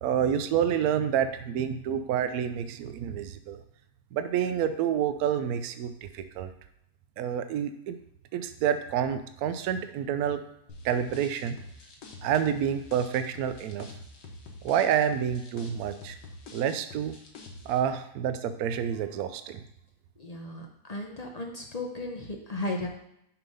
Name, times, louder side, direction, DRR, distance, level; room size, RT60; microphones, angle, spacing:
voice 1, 0.0-3.6 4.1-6.5 7.2-8.0 8.3-10.4 10.8-11.6 12.2-13.9 14.6-16.2 16.5-17.2 17.7-19.6, right 9 dB, 70° right, 9 dB, 1.0 m, -28 dB
sound 1, 10.7-17.8, left 2 dB, 90° left, 1.8 m, -46 dB
voice 2, 20.2-22.9, left 2 dB, 45° left, 1 dB, 0.5 m, -35 dB
7.0 x 3.6 x 5.3 m, 0.77 s
omnidirectional pair, 1.8 m